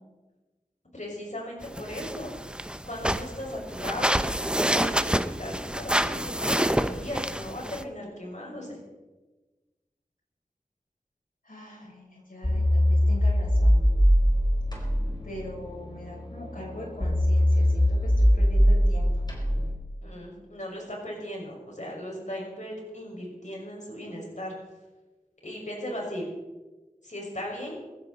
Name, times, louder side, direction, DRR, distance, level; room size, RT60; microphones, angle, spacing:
voice 1, 0.9-2.4 2.9-8.8 20.0-24.5 25.4-26.3 27.0-27.8, equal, 60° left, -2 dB, 5.7 m, -37 dB
sound 1, 1.6-7.8, equal, 5° right, 0.7 m, -28 dB
voice 2, 11.4-13.9 15.2-19.2, left 1 dB, 75° left, -3 dB, 6.4 m, -41 dB
sound 2, 12.4-19.7, equal, 30° left, 4.1 m, -22 dB
20.5 x 15.5 x 4.1 m, 1.2 s
wide cardioid pair, 55°, 14 cm